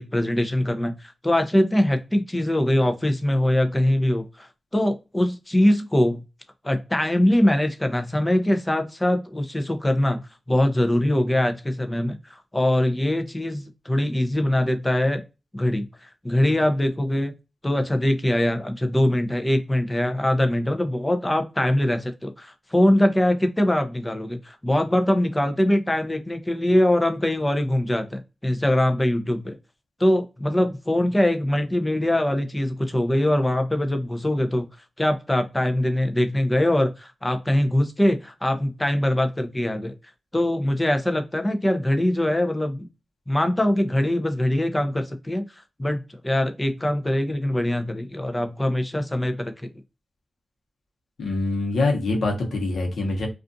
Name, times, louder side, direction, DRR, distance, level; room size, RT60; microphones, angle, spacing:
voice 1, 0.0-4.5 4.7-6.2 6.6-10.2 10.5-15.2 15.5-17.3 17.6-29.6 30.0-34.7 35.0-39.9 40.3-42.9 43.3-45.5 45.8-49.7, left 1 dB, 15° left, 0.5 m, -22 dB
voice 2, 51.2-53.3, left 2 dB, 85° left, 0.9 m, -24 dB
2.4 x 2.4 x 2.5 m
wide cardioid pair, 80°, 0 cm